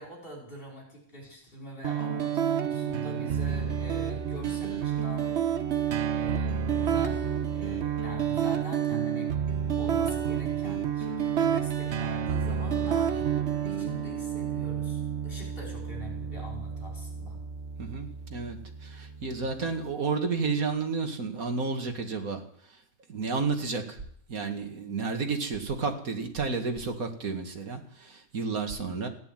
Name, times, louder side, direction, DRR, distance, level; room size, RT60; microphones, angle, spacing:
voice 1, 0.0-5.4 6.1-7.3 7.5-9.3 9.8-13.3 13.7-17.4, equal, 40° left, -1 dB, 5.2 m, -44 dB
sound 1, 1.8-19.8, right 8 dB, 55° right, 1.2 m, -30 dB
voice 2, 17.8-18.6 18.8-22.4 23.1-24.0 24.3-29.1, right 4 dB, 80° right, 4 dB, 2.4 m, -31 dB
15.5 x 9.6 x 9.1 m, 0.65 s
omnidirectional pair, 1.5 m